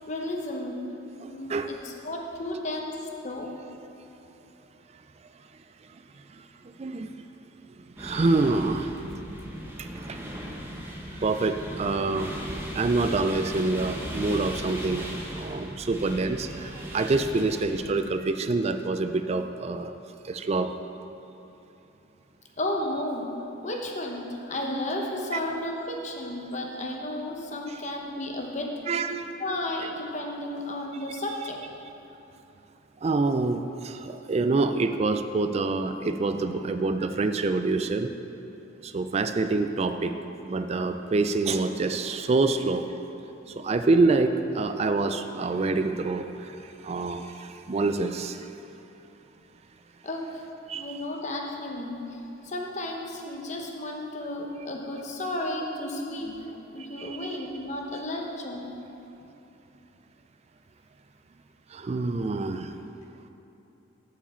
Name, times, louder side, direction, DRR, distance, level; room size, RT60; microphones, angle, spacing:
voice 1, 0.1-0.8 1.2-3.0 3.2-3.5 22.6-23.3 23.6-28.7 29.4-31.6 50.0-50.4 50.7-58.7, left 1 dB, 35° left, 0 dB, 0.9 m, -33 dB
voice 2, 1.2-1.8 6.6-7.1 8.0-8.9 9.8-10.2 11.1-12.3 12.7-15.1 15.4-20.0 20.2-20.7 28.9-29.4 33.0-38.1 38.8-40.2 40.4-42.9 43.5-48.5 50.7-51.0 56.9-57.4 61.7-62.7, right 3 dB, 35° right, 9 dB, 0.3 m, -26 dB
sound 1, 8.0-17.9, equal, 10° right, 0.9 m, -37 dB
14.0 x 4.9 x 4.4 m, 3.0 s
head